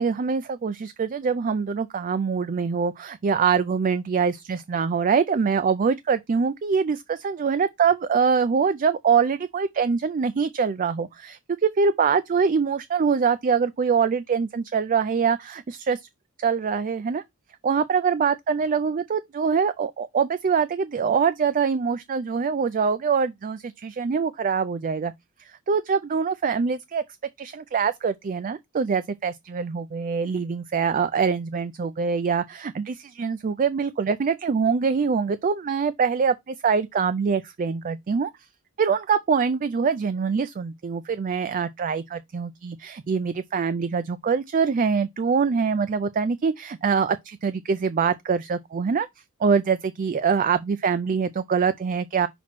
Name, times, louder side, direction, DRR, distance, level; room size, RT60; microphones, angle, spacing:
voice 1, 0.0-16.1 16.4-17.2 17.6-25.1 25.4-27.0 27.4-38.3 38.8-49.1 49.4-52.3, right 6 dB, 35° right, 0.4 m, -24 dB
6.0 x 3.0 x 5.7 m
head